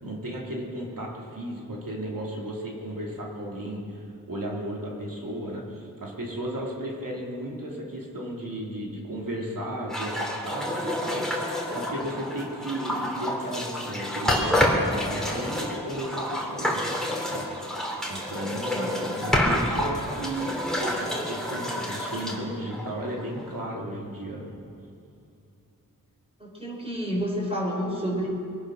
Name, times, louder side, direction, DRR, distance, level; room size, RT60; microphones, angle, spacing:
voice 1, 0.0-16.9 17.3-24.5, right 1 dB, 75° right, -3 dB, 2.8 m, -34 dB
sound 1, 9.9-23.4, left 1 dB, ahead, 3.1 m, -28 dB
voice 2, 26.4-28.3, equal, 15° right, -3 dB, 5.1 m, -29 dB
23.5 x 9.3 x 6.3 m, 2.7 s
wide cardioid pair, 75°, 34 cm